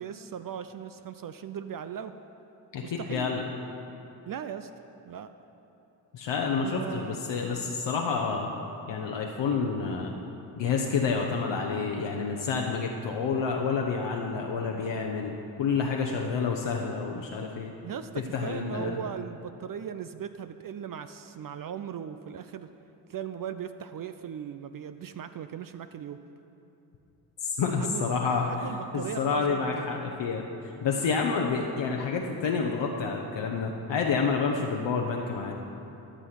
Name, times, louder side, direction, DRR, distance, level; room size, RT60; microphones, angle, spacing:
voice 1, 0.0-2.1 2.8-3.3 4.3-4.7 5.0-5.3 6.6-7.2 17.8-22.7 23.1-26.2 27.8-28.1 28.4-29.9, right 8 dB, 45° right, 10 dB, 0.5 m, -38 dB
voice 2, 2.7-3.4 6.1-8.5 8.9-10.1 10.6-15.3 15.6-17.7 18.3-19.0 27.4-28.5 28.9-35.5, left 5 dB, 60° left, 0 dB, 0.9 m, -29 dB
13.0 x 6.2 x 5.8 m, 2.9 s
supercardioid pair, 50°, 50 cm